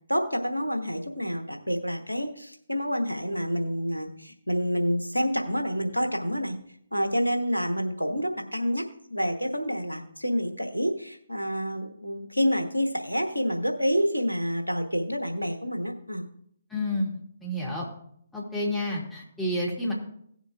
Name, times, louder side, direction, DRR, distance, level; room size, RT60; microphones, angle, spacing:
voice 1, 0.1-6.6 6.9-16.2, equal, 85° left, 5 dB, 1.1 m, -28 dB
voice 2, 16.7-17.9 18.3-19.9, left 1 dB, 5° left, -5 dB, 2.3 m, -30 dB
17.5 x 7.3 x 2.4 m, 0.68 s
figure-of-eight pair, 135°, 0 cm